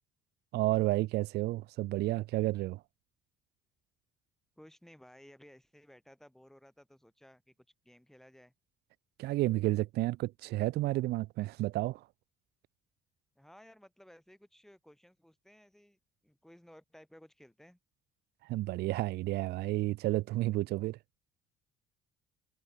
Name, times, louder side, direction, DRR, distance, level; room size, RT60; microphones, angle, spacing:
voice 1, 0.5-2.8 9.2-12.0 18.4-21.0, right 17 dB, 75° right, 0.6 m, -31 dB
voice 2, 4.6-7.5 7.8-8.5 13.4-17.8, equal, ahead, 6.3 m, -58 dB
cardioid pair, 110°, 17 cm